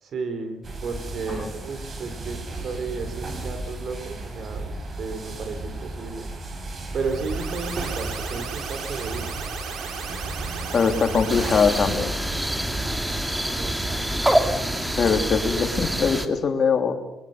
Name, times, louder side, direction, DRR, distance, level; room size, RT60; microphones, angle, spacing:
voice 1, 0.0-6.3 6.9-9.3 13.3-14.9, right 4 dB, 60° right, 9 dB, 4.3 m, -33 dB
sound 1, 0.6-16.1, right 2 dB, 45° right, 5.3 m, -35 dB
sound 2, 7.0-12.1, right 6 dB, 80° right, 4.7 m, -35 dB
voice 2, 10.7-12.1 15.0-16.9, left 5 dB, 45° left, 6 dB, 3.3 m, -22 dB
sound 3, 11.3-16.3, right 1 dB, 10° right, 2.5 m, -26 dB
24.5 x 22.0 x 6.8 m, 0.94 s
cardioid pair, 90°, 0 cm